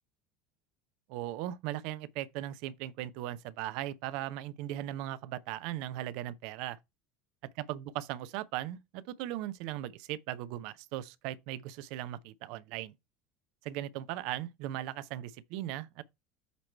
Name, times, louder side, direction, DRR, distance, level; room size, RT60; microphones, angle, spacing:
voice 1, 1.1-6.8 7.6-12.9 13.6-16.0, right 13 dB, 55° right, 0.5 m, -38 dB
8.1 x 3.0 x 4.4 m
figure-of-eight pair, 70°, 0 cm